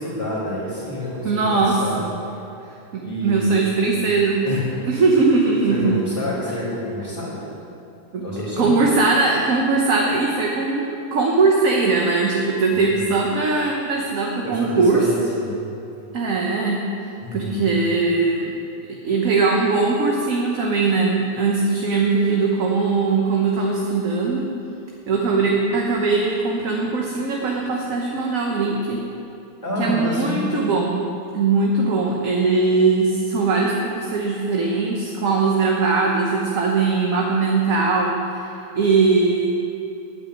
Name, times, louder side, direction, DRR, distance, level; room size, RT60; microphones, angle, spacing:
voice 1, 0.0-2.0 3.0-3.7 4.4-4.9 5.7-7.4 8.2-8.8 12.7-13.1 14.4-15.6 17.2-17.7 29.6-30.4, left 1 dB, 20° left, -10 dB, 2.5 m, -28 dB
voice 2, 1.2-2.1 2.9-4.4 4.9-6.0 8.1-8.3 8.5-15.1 16.1-16.8 17.3-18.5 19.0-24.5 25.1-29.0 29.8-31.0 31.3-38.5 38.7-39.5, right 4 dB, 55° right, -1 dB, 1.4 m, -20 dB
9.0 x 8.2 x 9.4 m, 2.7 s
omnidirectional pair, 1.8 m